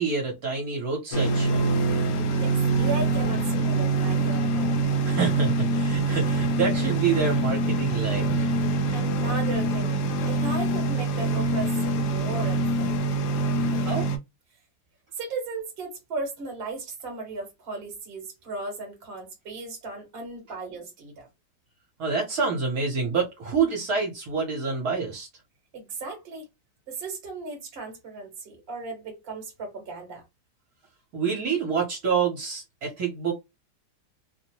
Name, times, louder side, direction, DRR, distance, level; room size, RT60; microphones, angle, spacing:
voice 1, 0.0-1.6 5.0-8.5 13.5-14.1 22.0-25.3 31.1-33.3, right 5 dB, 65° right, 1.3 m, -27 dB
sound 1, 1.1-14.2, right 2 dB, 70° left, 0.9 m, -24 dB
voice 2, 2.3-5.0 8.9-13.0 15.2-21.3 25.7-26.5 26.9-30.2, right 3 dB, 40° right, 1.1 m, -36 dB
2.9 x 2.1 x 2.8 m
omnidirectional pair, 1.8 m